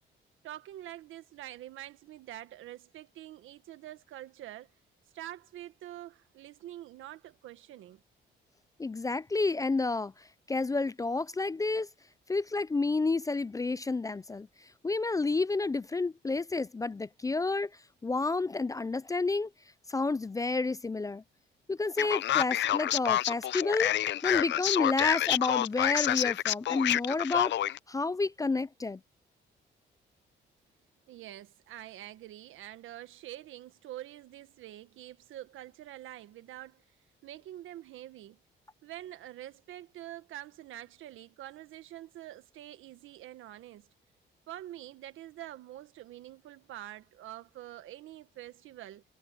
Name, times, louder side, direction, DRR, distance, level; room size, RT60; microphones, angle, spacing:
voice 1, 0.4-4.7 5.1-8.0 31.1-36.8 37.2-38.4 38.8-43.9 44.5-49.0, right 13 dB, 85° right, 1.6 m, -46 dB
voice 2, 8.8-10.1 10.5-11.9 12.3-14.5 14.8-17.7 18.0-19.5 19.9-21.2 21.7-23.9 24.2-27.5 27.9-29.0, left 3 dB, 15° left, 0.4 m, -30 dB
Male speech man speaking, 22.0-27.8, left 12 dB, 65° left, 0.6 m, -28 dB
cardioid pair, 90°, 20 cm